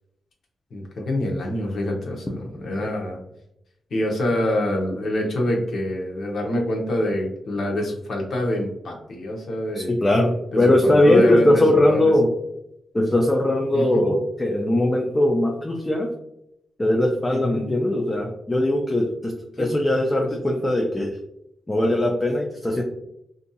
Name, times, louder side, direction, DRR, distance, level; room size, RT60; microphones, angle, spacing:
voice 1, 0.7-3.2 3.9-9.9 10.5-12.0 13.7-14.0 17.3-17.7 19.6-19.7, left 1 dB, 65° left, -1 dB, 0.7 m, -25 dB
voice 2, 9.9-12.3 12.9-16.1 16.8-21.2 21.7-22.8, left 1 dB, 20° left, 0 dB, 0.4 m, -20 dB
2.7 x 2.6 x 2.2 m, 0.80 s
cardioid pair, 95°, 0 cm